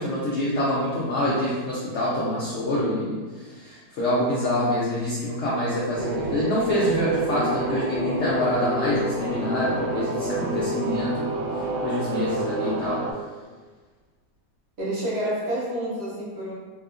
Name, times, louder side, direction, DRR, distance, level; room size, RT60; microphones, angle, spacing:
voice 1, 0.0-11.3 11.8-13.0, left 1 dB, 85° left, -6 dB, 0.6 m, -26 dB
sound 1, 6.0-13.1, right 2 dB, 85° right, 1.2 m, -28 dB
voice 2, 14.8-16.5, right 1 dB, 65° right, -7 dB, 0.6 m, -28 dB
2.8 x 2.3 x 2.4 m, 1.4 s
omnidirectional pair, 1.8 m